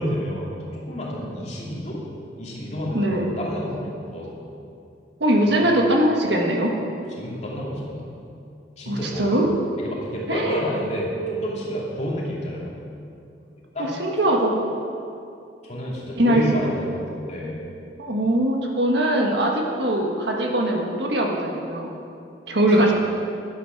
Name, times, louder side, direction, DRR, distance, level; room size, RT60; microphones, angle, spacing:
voice 1, 0.0-2.0 2.4-4.3 5.5-5.6 7.2-8.0 8.8-9.4 9.8-12.8 13.7-13.9 15.6-17.6, equal, 35° left, -4 dB, 2.6 m, -29 dB
voice 2, 2.9-3.2 5.2-6.7 8.9-9.5 10.3-10.6 13.8-14.5 16.1-16.4 18.0-21.9 22.5-22.9, right 1 dB, 65° right, 0 dB, 1.6 m, -21 dB
11.5 x 10.5 x 6.0 m, 2.6 s
head